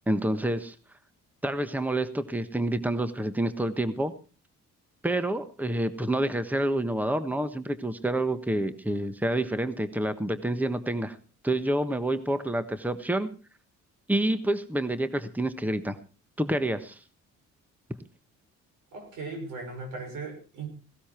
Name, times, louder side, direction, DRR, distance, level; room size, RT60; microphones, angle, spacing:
voice 1, 0.1-0.7 1.4-4.1 5.0-11.2 11.4-13.3 14.1-16.0 16.4-17.0, right 1 dB, 5° right, 11 dB, 1.3 m, -28 dB
voice 2, 18.9-20.7, right 3 dB, 90° right, 4 dB, 6.4 m, -37 dB
17.5 x 12.5 x 4.5 m, 0.34 s
cardioid pair, 90°, 30 cm